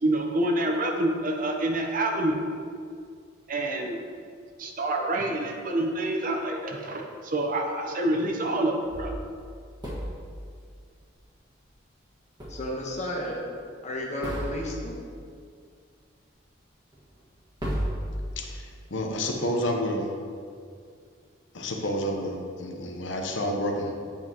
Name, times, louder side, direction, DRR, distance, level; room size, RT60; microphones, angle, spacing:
voice 1, 0.0-2.5 3.5-4.0 4.6-9.1, right 1 dB, 45° right, 3 dB, 0.7 m, -27 dB
sound 1, 8.8-10.4 12.4-13.1 13.4-13.5 14.2-15.0 16.9-17.0 17.6-18.8, equal, 20° right, 1.5 m, -34 dB
voice 2, 12.5-13.5 13.8-15.0, left 1 dB, 35° left, -1 dB, 1.1 m, -32 dB
voice 3, 18.4-20.1 21.5-23.9, left 1 dB, 65° left, 2 dB, 0.8 m, -29 dB
8.8 x 6.0 x 2.9 m, 2.2 s
head